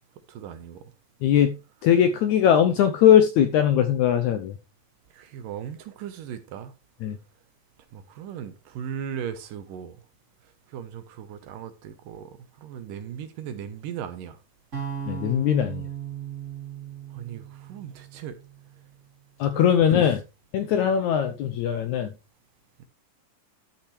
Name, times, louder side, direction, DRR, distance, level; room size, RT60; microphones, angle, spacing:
voice 1, 0.3-0.8 5.1-6.7 7.9-10.0 10.7-14.4 17.1-18.4 19.5-20.1 22.8-22.9, right 8 dB, 75° right, 2.5 m, -37 dB
voice 2, 1.2-1.6 1.8-4.5 7.0-7.2 15.1-15.8 19.4-20.2 20.5-22.1, left 9 dB, 80° left, 1.7 m, -20 dB
sound 1, 14.7-18.9, right 8 dB, 25° right, 1.7 m, -37 dB
13.0 x 5.9 x 3.2 m
omnidirectional pair, 4.2 m